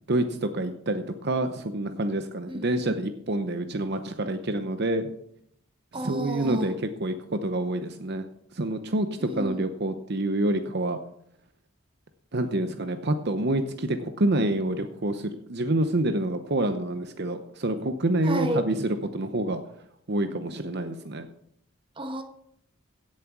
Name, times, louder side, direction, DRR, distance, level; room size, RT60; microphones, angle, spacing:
voice 1, 0.1-5.1 5.9-8.2 8.5-11.0 12.3-19.6 20.1-21.3, right 1 dB, 50° right, 8 dB, 0.8 m, -27 dB
voice 2, 2.5-3.0 5.9-6.7 9.3-9.6 18.2-18.6 22.0-22.2, equal, 25° right, 6 dB, 1.3 m, -32 dB
16.5 x 7.4 x 6.0 m, 0.73 s
head